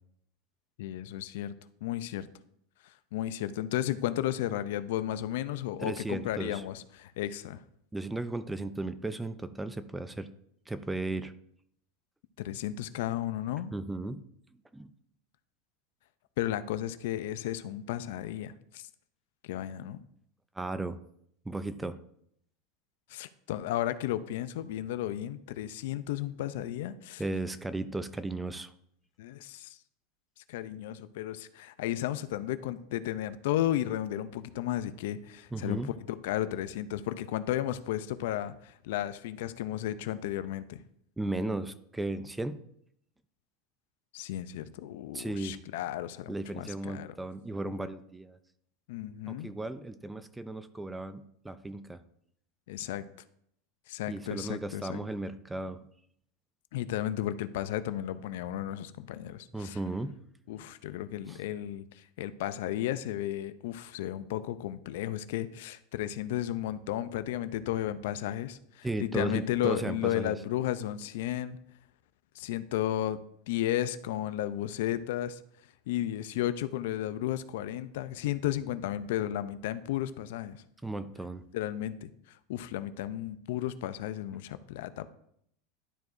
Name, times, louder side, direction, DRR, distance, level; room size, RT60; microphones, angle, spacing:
voice 1, 0.8-1.5 1.8-2.3 3.1-7.6 12.4-13.7 16.4-18.9 19.4-20.0 23.1-27.2 29.2-29.8 30.5-35.8 36.1-40.8 44.1-47.2 48.9-49.5 52.7-53.0 53.9-55.0 56.7-59.8 60.5-61.8 62.2-71.6 72.4-73.2 73.5-75.4 75.9-80.6 81.5-85.1, left 12 dB, 75° left, 13 dB, 0.5 m, -33 dB
voice 2, 5.8-6.6 7.9-10.3 10.7-11.3 13.7-14.2 14.7-14.9 20.6-21.0 21.5-22.0 27.2-28.7 35.5-35.9 41.2-42.6 45.1-45.6 46.3-48.4 49.3-52.0 54.1-55.8 59.5-60.2 61.3-61.4 68.8-70.3 80.8-81.4, right 2 dB, 10° right, 13 dB, 0.4 m, -35 dB
11.5 x 4.7 x 2.6 m, 0.71 s
supercardioid pair, 130°, 0 cm